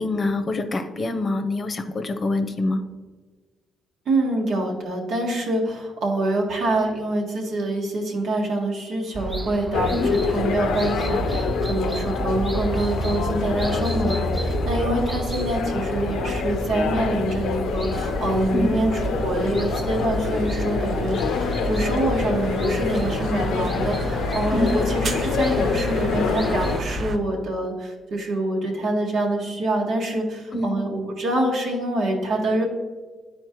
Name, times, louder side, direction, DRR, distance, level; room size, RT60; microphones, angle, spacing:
voice 1, 0.0-2.8 9.9-10.1 18.5-18.7 24.5-24.7 30.5-30.7, left 2 dB, 40° left, 7 dB, 0.7 m, -25 dB
voice 2, 4.0-32.6, right 1 dB, 70° right, 0 dB, 1.7 m, -25 dB
sound 1, 9.1-27.1, right 3 dB, 15° right, 0.3 m, -32 dB
sound 2, 9.7-26.8, left 5 dB, 80° left, 0.5 m, -27 dB
sound 3, 17.9-27.2, right 1 dB, 55° right, 0.6 m, -31 dB
10.0 x 4.3 x 3.0 m, 1.4 s
cardioid pair, 90°, 0 cm